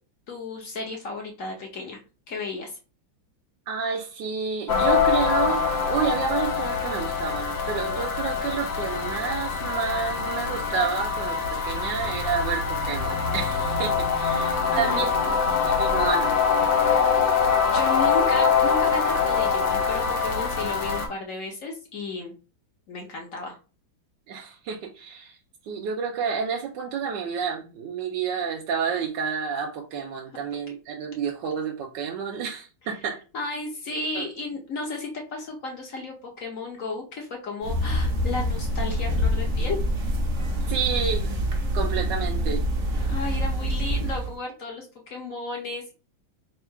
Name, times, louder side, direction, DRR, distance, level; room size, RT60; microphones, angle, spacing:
voice 1, 0.3-2.0 2.3-2.7 14.4-15.4 17.7-22.4 22.9-23.6 33.3-39.8 43.1-45.9, left 3 dB, 55° left, 0 dB, 0.9 m, -33 dB
voice 2, 3.7-15.2 15.6-16.3 24.3-25.4 25.6-33.2 34.1-34.3 40.7-41.3 41.7-42.6, right 6 dB, 70° right, 0 dB, 1.2 m, -30 dB
sound 1, 4.7-21.1, left 5 dB, 70° left, 1.6 m, -24 dB
sound 2, 37.6-44.3, equal, 50° right, 0.9 m, -26 dB
3.6 x 2.4 x 4.5 m, 0.34 s
omnidirectional pair, 2.2 m